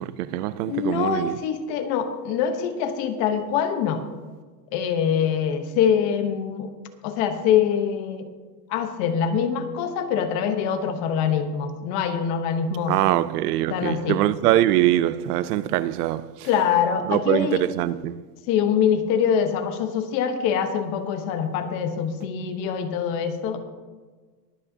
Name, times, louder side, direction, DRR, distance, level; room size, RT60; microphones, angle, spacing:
voice 1, 0.0-1.4 12.9-16.5 17.1-18.2, right 14 dB, 65° right, 0.6 m, -23 dB
voice 2, 0.7-4.0 4.7-6.7 7.0-8.3 8.7-12.9 13.7-14.2 16.4-17.6 18.5-23.6, left 8 dB, 35° left, 1.1 m, -24 dB
23.0 x 8.4 x 2.8 m
supercardioid pair, 175°, 49 cm